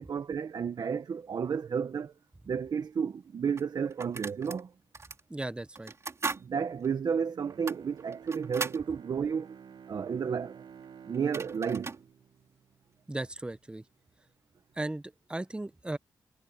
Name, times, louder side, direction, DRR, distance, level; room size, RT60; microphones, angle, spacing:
voice 1, 0.0-2.1 2.5-4.7 6.3-9.6 9.9-10.6 11.1-12.0, right 6 dB, 60° right, 1.2 m, -32 dB
sound 1, 2.8-2.9 3.6-4.6 4.9-5.2 5.7-6.5 6.8-6.9 7.5-8.8 10.8-10.9 11.1-12.0, right 4 dB, 40° right, 3.4 m, -38 dB
voice 2, 5.3-5.9 13.1-13.8 14.8-15.0 15.3-16.0, right 2 dB, 15° right, 0.8 m, -36 dB
Bowed string instrument, 7.3-13.5 13.9-14.0, right 7 dB, 80° right, 1.5 m, -52 dB
wide cardioid pair, 100°, 8 cm